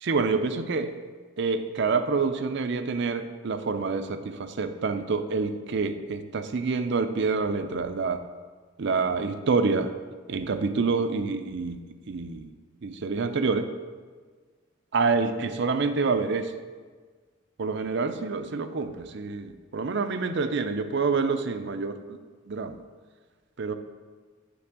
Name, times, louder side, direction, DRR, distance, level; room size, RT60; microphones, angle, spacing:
voice 1, 0.0-1.0 1.4-8.2 8.8-9.9 10.3-11.8 12.1-12.5 12.8-13.7 14.9-16.5 17.6-22.2 22.5-22.8 23.6-23.7, right 4 dB, 55° right, 9 dB, 0.5 m, -27 dB
9.7 x 3.4 x 5.9 m, 1.5 s
head